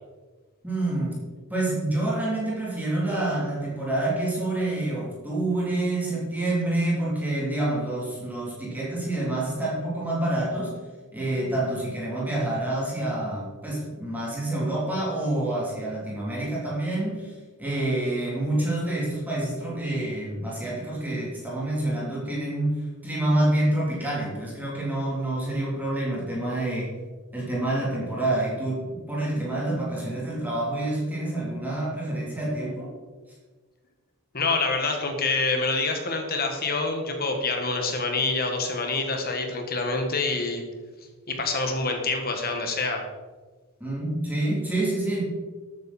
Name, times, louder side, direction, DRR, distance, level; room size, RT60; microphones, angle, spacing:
voice 1, 0.6-1.2 1.5-10.8 11.1-17.3 17.6-26.9 27.3-32.9 43.8-45.2, right 1 dB, 10° right, -6 dB, 3.4 m, -27 dB
voice 2, 34.3-40.6 41.3-43.0, left 3 dB, 45° left, 4 dB, 1.7 m, -26 dB
13.0 x 9.2 x 4.4 m, 1.3 s
head